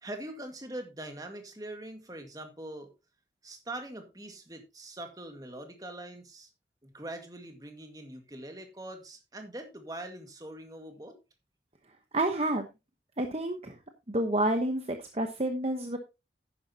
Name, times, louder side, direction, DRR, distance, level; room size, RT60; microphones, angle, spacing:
voice 1, 0.0-2.9 3.4-6.5 6.8-11.2, right 1 dB, 20° right, 1.9 m, -43 dB
voice 2, 12.1-12.7 13.2-13.8 14.1-16.0, right 1 dB, 35° right, 1.0 m, -29 dB
11.5 x 9.9 x 2.9 m
head